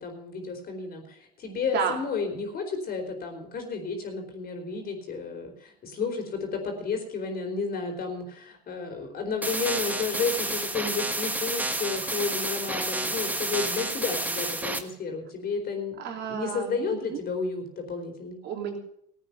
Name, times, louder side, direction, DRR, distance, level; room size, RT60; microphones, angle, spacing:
voice 1, 0.0-16.0 16.3-18.4, left 4 dB, 45° left, 4 dB, 4.4 m, -32 dB
sound 1, 9.4-14.8, right 1 dB, 10° right, 1.5 m, -30 dB
voice 2, 16.0-17.2 18.4-18.8, right 7 dB, 60° right, 2 dB, 3.3 m, -31 dB
16.0 x 8.8 x 6.9 m, 0.69 s
supercardioid pair, 80°, 21 cm